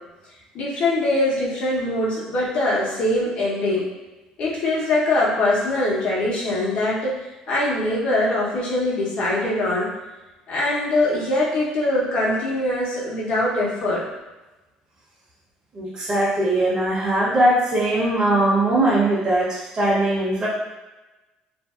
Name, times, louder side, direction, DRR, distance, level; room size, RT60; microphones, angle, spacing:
voice 1, 0.5-3.8 4.4-7.1 7.5-9.9 10.5-14.0, left 1 dB, 60° left, -5 dB, 0.9 m, -22 dB
voice 2, 15.7-20.5, right 1 dB, 30° right, -7 dB, 0.8 m, -20 dB
2.5 x 2.3 x 2.4 m, 1.1 s
supercardioid pair, 100°, 2 cm